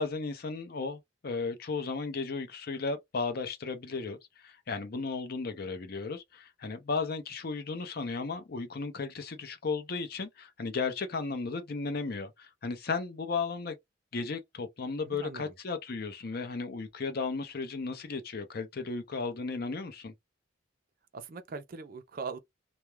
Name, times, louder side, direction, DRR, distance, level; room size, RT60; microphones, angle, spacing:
voice 1, 0.0-4.2 4.4-13.7 14.1-20.1, left 4 dB, 50° left, 0.6 m, -35 dB
voice 2, 15.0-15.5 21.1-22.4, right 4 dB, 45° right, 0.4 m, -41 dB
2.3 x 2.1 x 3.0 m
head